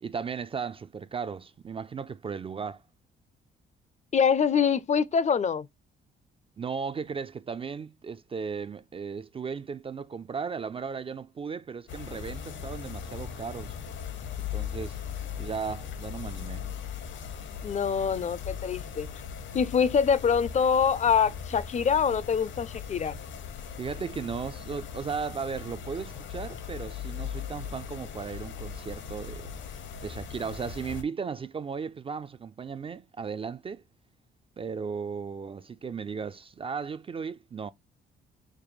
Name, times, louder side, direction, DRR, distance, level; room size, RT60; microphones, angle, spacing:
voice 1, 0.0-2.8 6.6-13.8 14.4-15.0 15.4-16.7 23.8-29.5 30.0-33.8 34.6-37.7, right 5 dB, 30° right, 0.3 m, -36 dB
voice 2, 4.1-5.7 17.6-19.1 19.5-23.2, left 6 dB, 35° left, 0.4 m, -25 dB
sound 1, 11.9-31.0, left 7 dB, 70° left, 0.8 m, -39 dB
5.1 x 2.1 x 3.1 m
cardioid pair, 90°, 20 cm